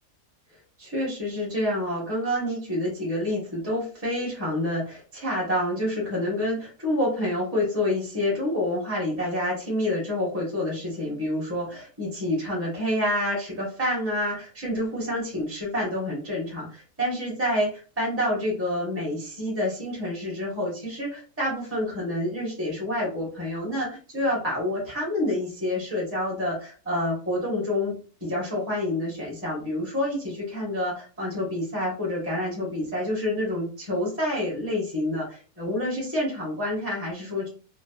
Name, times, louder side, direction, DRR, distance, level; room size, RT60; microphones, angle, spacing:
voice 1, 0.8-27.9 28.2-37.5, left 1 dB, 10° right, -4 dB, 1.0 m, -28 dB
3.1 x 2.3 x 2.3 m, 0.38 s
omnidirectional pair, 1.5 m